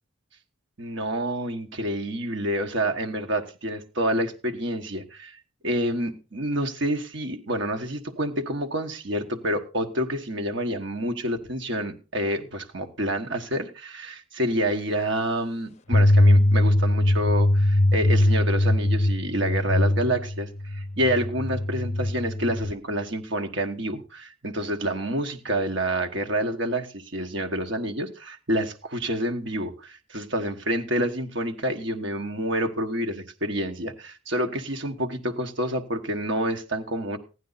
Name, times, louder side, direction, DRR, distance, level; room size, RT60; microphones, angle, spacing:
voice 1, 0.8-5.4 5.6-37.2, right 1 dB, 60° right, 4 dB, 1.4 m, -28 dB
sound 1, 15.9-22.7, left 1 dB, 35° left, 0.6 m, -21 dB
15.0 x 11.0 x 4.0 m, 0.32 s
head